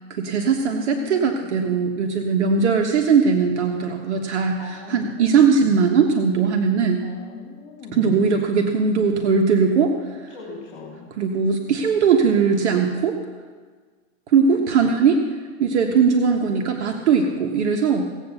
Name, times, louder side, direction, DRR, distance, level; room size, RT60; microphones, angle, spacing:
voice 1, 0.1-7.0 7.9-9.9 11.2-13.2 14.3-15.2 15.6-18.1, right 5 dB, 60° right, 2 dB, 1.3 m, -19 dB
voice 2, 0.9-1.9 4.6-5.7 7.0-8.4 10.3-11.1 14.8-14.9, left 5 dB, 40° left, -2 dB, 2.8 m, -39 dB
17.0 x 8.2 x 6.9 m, 1.5 s
hypercardioid pair, 160°, 39 cm